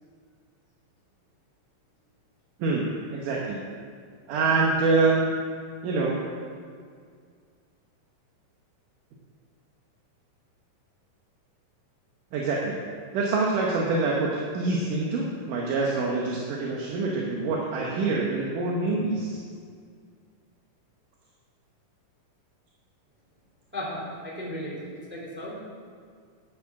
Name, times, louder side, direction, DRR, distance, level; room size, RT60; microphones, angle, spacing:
voice 1, 3.1-3.6 4.3-5.4 5.8-6.2 12.3-12.7 13.1-19.4, right 3 dB, 75° right, -2 dB, 2.6 m, -25 dB
voice 2, 23.7-25.6, equal, 5° right, -6 dB, 2.1 m, -35 dB
10.0 x 8.7 x 5.9 m, 2.1 s
omnidirectional pair, 3.9 m